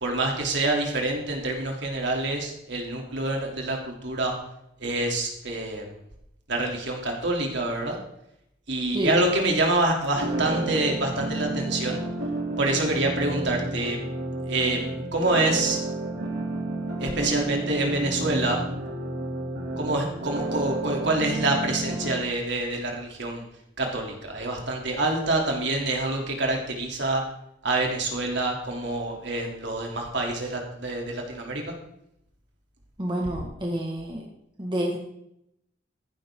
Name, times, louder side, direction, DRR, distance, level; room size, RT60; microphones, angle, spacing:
voice 1, 0.0-4.3 4.8-5.8 6.5-8.0 8.7-12.0 12.6-14.0 14.5-15.8 17.0-18.6 19.8-23.4 23.8-27.2 27.6-31.7, right 2 dB, 60° right, 0 dB, 3.1 m, -26 dB
sound 1, 10.1-22.1, right 2 dB, 90° right, 2.9 m, -31 dB
voice 2, 33.0-34.2 34.6-35.0, equal, 25° right, -1 dB, 1.7 m, -28 dB
15.0 x 12.0 x 3.8 m, 0.78 s
head